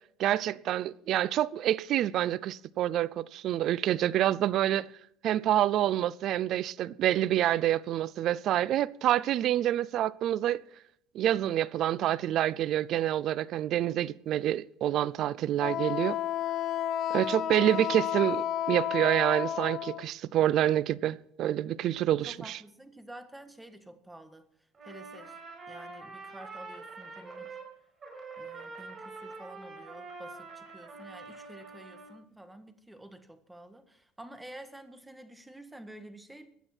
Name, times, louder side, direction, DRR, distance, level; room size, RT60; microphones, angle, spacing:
voice 1, 0.2-4.9 5.2-10.6 11.1-16.2 17.1-22.6, right 12 dB, 55° right, 0.5 m, -27 dB
Wind instrument woodwind instrument, 15.6-20.0, left 11 dB, 50° left, 1.0 m, -31 dB
voice 2, 22.1-24.5 24.8-25.4 25.7-27.6 28.4-36.5, right 1 dB, 5° right, 1.5 m, -49 dB
Trumpet, 24.7-27.7 28.0-32.1, right 3 dB, 30° right, 5.2 m, -45 dB
17.0 x 11.5 x 4.5 m
cardioid pair, 125°, 0 cm